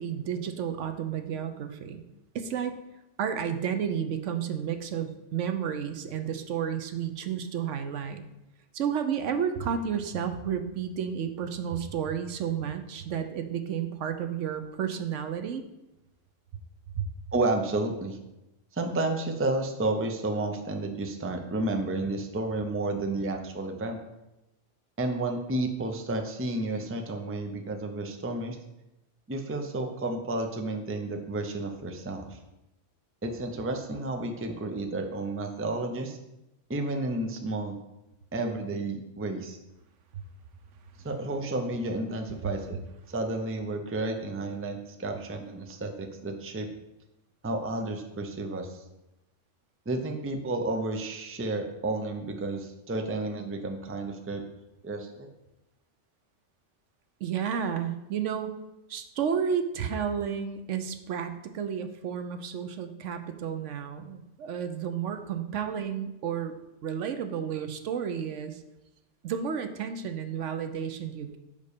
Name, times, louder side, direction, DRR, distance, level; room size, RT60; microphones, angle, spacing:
voice 1, 0.0-2.0 2.3-2.8 3.2-8.2 8.7-15.6 16.9-17.1 40.1-40.2 57.2-58.5 58.9-66.5 66.8-68.6 69.2-71.4, right 8 dB, 75° right, 8 dB, 1.0 m, -31 dB
voice 2, 17.3-18.2 18.7-24.0 25.0-28.6 29.3-32.4 33.2-36.2 36.7-37.8 38.3-39.6 41.0-42.8 43.1-46.7 47.4-48.8 49.9-54.4 54.8-55.3, right 2 dB, 15° right, 4 dB, 0.5 m, -31 dB
5.4 x 5.1 x 6.6 m, 0.93 s
omnidirectional pair, 1.3 m